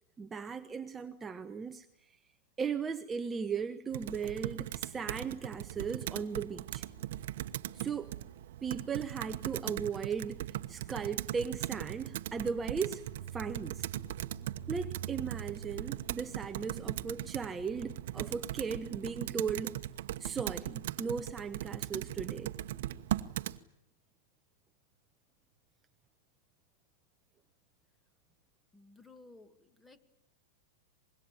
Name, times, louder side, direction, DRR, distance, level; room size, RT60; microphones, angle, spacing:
voice 1, 0.2-1.9 2.6-6.9 7.7-8.1 8.6-10.4 10.7-13.0 13.3-13.9 14.7-19.8 20.2-22.5, right 6 dB, 15° right, 1.0 m, -37 dB
Computer keyboard, 3.9-23.6, right 13 dB, 65° right, 1.1 m, -39 dB
voice 2, 28.7-30.0, left 3 dB, 10° left, 2.3 m, -56 dB
25.0 x 21.5 x 9.0 m
hypercardioid pair, 125°, 0 cm